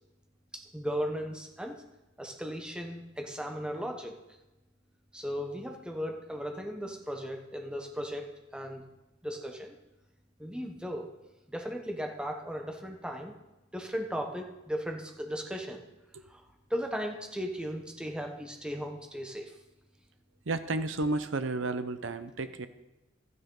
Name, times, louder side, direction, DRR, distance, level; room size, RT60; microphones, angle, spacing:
voice 1, 0.5-1.8 2.2-4.2 5.1-8.8 9.2-9.8 10.4-11.1 11.5-13.3 13.7-15.8 16.3-16.4 16.7-19.6, equal, 5° right, 2 dB, 1.0 m, -36 dB
voice 2, 20.5-22.7, right 2 dB, 65° right, 10 dB, 0.7 m, -32 dB
13.0 x 9.5 x 3.9 m, 1.0 s
head